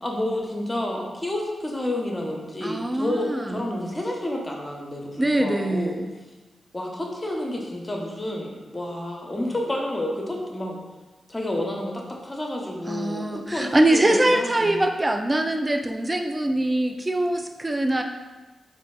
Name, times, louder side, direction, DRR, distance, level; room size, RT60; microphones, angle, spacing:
voice 1, 0.0-6.0 6.7-10.8 11.3-14.8, left 1 dB, 30° left, 0 dB, 0.8 m, -30 dB
voice 2, 2.6-3.6 5.2-6.1 12.9-18.0, right 1 dB, 25° right, 5 dB, 0.4 m, -23 dB
3.9 x 2.6 x 2.3 m, 1.2 s
supercardioid pair, 40°, 0 cm